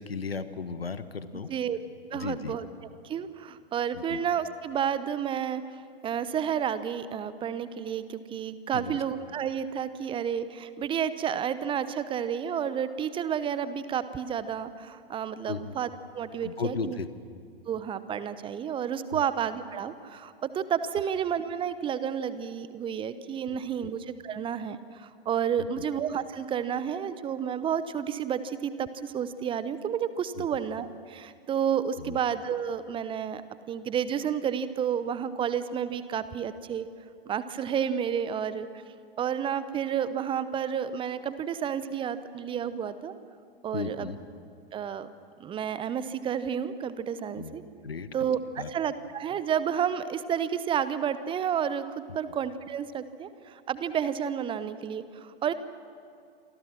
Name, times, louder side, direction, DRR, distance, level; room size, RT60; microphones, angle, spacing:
voice 1, 0.0-1.5 2.1-2.5 3.9-4.2 8.7-9.0 15.5-15.7 16.4-17.1 19.1-19.2 23.5-23.9 25.6-25.7 30.4-30.5 31.9-32.2 43.7-44.2 47.4-47.6 47.8-48.1 48.6-48.7, left 5 dB, 75° left, 12 dB, 1.4 m, -35 dB
voice 2, 1.5-1.8 2.1-2.7 3.0-5.6 6.0-17.0 17.7-33.4 33.7-36.9 37.3-38.7 39.2-43.1 43.6-44.2 44.7-45.1 45.4-47.6 48.1-55.5, right 8 dB, 15° right, 14 dB, 0.9 m, -31 dB
28.0 x 24.5 x 6.2 m, 2.3 s
figure-of-eight pair, 100°, 30 cm